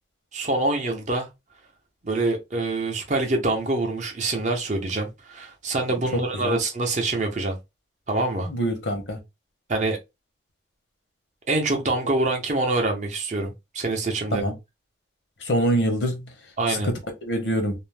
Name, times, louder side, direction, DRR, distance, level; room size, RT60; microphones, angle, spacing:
voice 1, 0.3-1.3 2.0-7.6 8.1-8.5 9.7-10.0 11.5-14.5 16.6-16.9, right 2 dB, 40° right, 0.6 m, -25 dB
voice 2, 8.5-9.2 14.3-14.5 15.4-16.2 16.7-16.8 17.2-17.7, right 1 dB, 75° left, 0.9 m, -24 dB
2.6 x 2.0 x 3.2 m
head